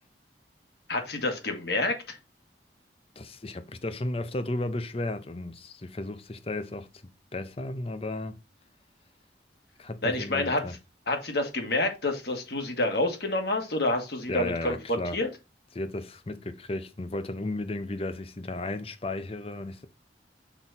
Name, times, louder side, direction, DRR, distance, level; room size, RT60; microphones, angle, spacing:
voice 1, 0.9-2.2 10.0-10.6 11.1-15.3, left 2 dB, 60° left, 1.7 m, -28 dB
voice 2, 3.2-6.9 7.3-8.4 9.8-10.7 14.3-15.2 15.7-19.9, left 2 dB, 30° left, 0.7 m, -34 dB
6.1 x 4.6 x 4.1 m
head